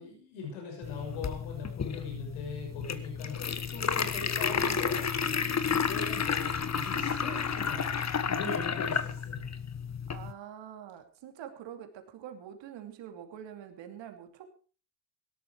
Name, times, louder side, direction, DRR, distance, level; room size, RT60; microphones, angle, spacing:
voice 1, 0.0-7.9 8.3-9.5, left 4 dB, 85° left, 1 dB, 6.5 m, -41 dB
sound 1, 0.8-10.3, left 6 dB, 35° left, 1.5 m, -31 dB
voice 2, 10.1-14.5, right 9 dB, 70° right, 7 dB, 2.8 m, -45 dB
17.5 x 12.5 x 4.7 m, 0.39 s
supercardioid pair, 70°, 46 cm